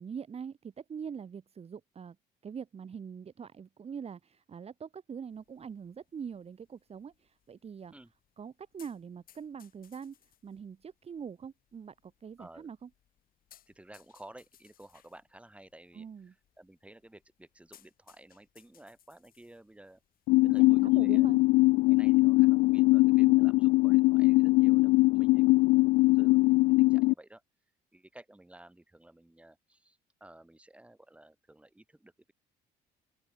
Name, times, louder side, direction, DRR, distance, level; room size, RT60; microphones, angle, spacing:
voice 1, 0.0-2.2 2.4-7.9 8.4-10.2 10.4-12.9 15.9-16.3 20.4-21.4 23.2-23.4, right 7 dB, 35° right, 2.9 m, -43 dB
sound 1, 5.3-22.8, left 11 dB, 60° left, 6.8 m, -66 dB
voice 2, 12.4-12.7 13.7-20.0 20.4-21.3 21.9-27.4 27.9-32.3, right 1 dB, 5° right, 6.0 m, -54 dB
sound 2, 20.3-27.1, left 22 dB, 85° left, 0.4 m, -22 dB
open air
cardioid pair, 110°, 17 cm